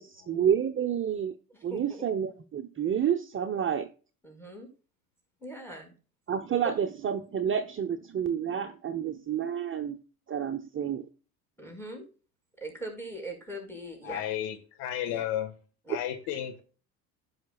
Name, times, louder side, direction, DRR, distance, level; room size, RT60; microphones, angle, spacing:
voice 1, 0.3-1.3 1.6-3.9 6.3-10.0 10.3-11.0, right 8 dB, 25° right, 0.9 m, -29 dB
voice 2, 1.5-2.0 4.2-4.7 5.4-5.9 6.6-6.7 11.6-12.1 12.6-14.2 15.1-15.2 15.9-16.0, right 2 dB, 5° left, 5.0 m, -41 dB
voice 3, 14.0-15.5 15.9-16.6, left 11 dB, 60° left, 1.6 m, -33 dB
15.0 x 6.0 x 2.3 m
hypercardioid pair, 65°, 46 cm